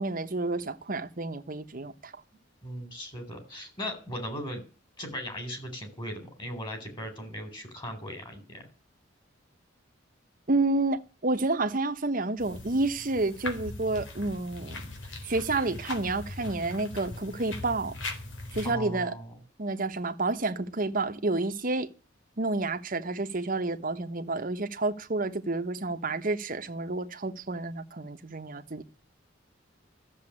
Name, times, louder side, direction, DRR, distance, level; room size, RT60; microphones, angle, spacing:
voice 1, 0.0-2.1 10.5-14.9 15.2-18.0 18.5-19.1 19.6-21.9 22.4-28.8, right 2 dB, 45° right, 1.2 m, -30 dB
voice 2, 2.6-4.6 5.0-8.6 18.6-19.3, equal, 25° left, 4.0 m, -38 dB
sound 1, 12.4-18.7, left 2 dB, 80° left, 3.8 m, -40 dB
14.0 x 7.5 x 9.9 m
head